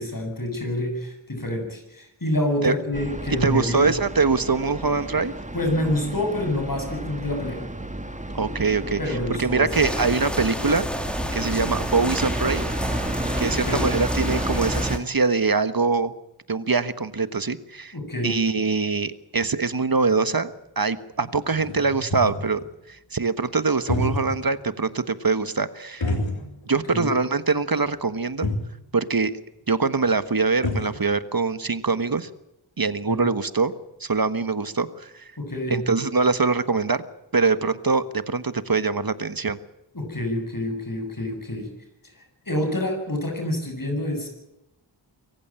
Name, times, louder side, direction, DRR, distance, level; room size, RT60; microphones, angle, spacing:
voice 1, 0.0-3.9 5.5-7.6 9.0-9.9 13.5-13.9 17.9-18.4 26.9-27.1 33.1-33.2 35.4-35.9 39.9-41.7 42.2-44.4, left 1 dB, 45° left, 5 dB, 7.6 m, -27 dB
sound 1, 2.9-15.0, right 1 dB, 15° right, 2.0 m, -32 dB
voice 2, 3.4-5.3 8.3-10.9 11.3-12.6 13.4-16.1 16.5-17.9 18.2-22.6 22.9-26.1 26.7-28.5 28.9-29.4 29.7-32.3 32.8-33.7 34.0-35.3 35.7-37.0 37.3-39.6, right 4 dB, 50° right, 13 dB, 1.5 m, -23 dB
sound 2, 9.7-15.0, equal, ahead, 3.1 m, -30 dB
sound 3, 19.6-19.7 20.1-20.2 20.9-21.0 21.2-22.7 23.7-24.5 24.9-25.0 26.0-26.8 27.1-27.2 28.1-28.2 28.4-28.8 30.1-30.2 30.4-31.0, left 2 dB, 85° left, 3.7 m, -28 dB
24.5 x 15.0 x 9.0 m, 0.89 s
wide cardioid pair, 40°, 45 cm